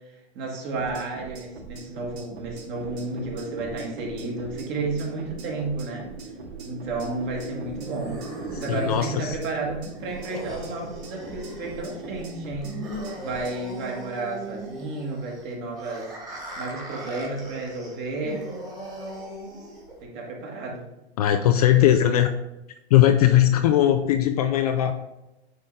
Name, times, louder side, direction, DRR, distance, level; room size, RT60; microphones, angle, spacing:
voice 1, 0.0-6.1 6.6-12.8 13.2-16.2 16.6-18.6 20.0-20.9, right 3 dB, 30° right, -1 dB, 1.8 m, -32 dB
sound 1, 0.7-13.6, right 3 dB, 65° right, 2.5 m, -42 dB
Wind, 2.7-11.5, right 4 dB, 80° right, 1.5 m, -42 dB
sound 2, 7.0-20.0, right 1 dB, 10° right, 1.8 m, -39 dB
voice 2, 8.6-9.4 21.2-22.3 22.9-24.9, left 11 dB, 40° left, 7 dB, 0.4 m, -19 dB
9.1 x 3.8 x 3.9 m, 0.95 s
hypercardioid pair, 135°, 33 cm